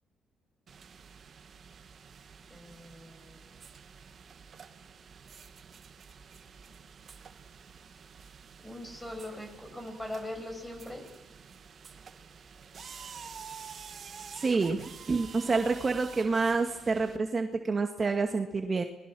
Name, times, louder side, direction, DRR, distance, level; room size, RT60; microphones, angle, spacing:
sound 1, 0.7-17.2, right 6 dB, 50° right, 2.1 m, -49 dB
voice 1, 2.5-3.5 8.6-11.1, left 1 dB, 10° left, 4 dB, 7.9 m, -41 dB
voice 2, 14.3-18.8, right 4 dB, 35° right, 5 dB, 1.9 m, -28 dB
29.5 x 21.0 x 6.3 m, 1.1 s
cardioid pair, 90°, 0 cm